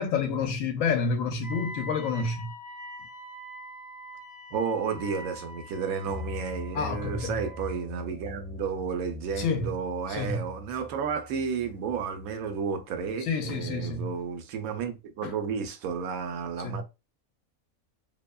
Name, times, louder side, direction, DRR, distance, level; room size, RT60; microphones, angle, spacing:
voice 1, 0.0-2.5 6.7-7.4 9.4-9.7 10.1-10.4 13.3-14.1 15.2-15.3 16.6-16.8, left 5 dB, 70° left, 0.9 m, -29 dB
Wind instrument woodwind instrument, 1.4-7.9, equal, 30° left, 0.6 m, -44 dB
voice 2, 4.5-16.8, right 6 dB, 80° right, 1.0 m, -32 dB
sound 1, 6.1-12.6, left 2 dB, 30° right, 0.5 m, -43 dB
2.7 x 2.2 x 2.2 m
omnidirectional pair, 1.5 m